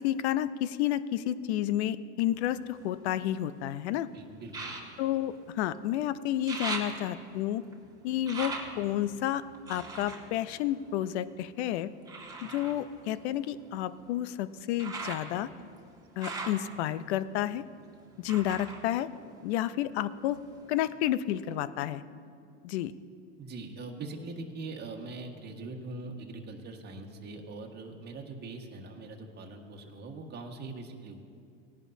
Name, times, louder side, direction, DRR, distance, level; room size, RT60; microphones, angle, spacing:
voice 1, 0.0-4.1 5.0-7.6 8.0-9.4 9.7-11.9 12.4-15.5 16.2-17.6 18.2-19.1 19.4-20.4 20.7-22.0 22.6-22.9, left 12 dB, 65° left, 15 dB, 0.6 m, -30 dB
sound 1, 2.3-3.7 4.5-6.0 6.2-11.4 12.1-19.9 20.2-21.0 21.5-21.6, right 3 dB, 10° right, 1.8 m, -42 dB
voice 2, 4.1-4.8 23.4-31.2, right 3 dB, 30° right, 1 dB, 1.5 m, -42 dB
18.5 x 11.0 x 2.7 m, 2.3 s
hypercardioid pair, 110°, 35 cm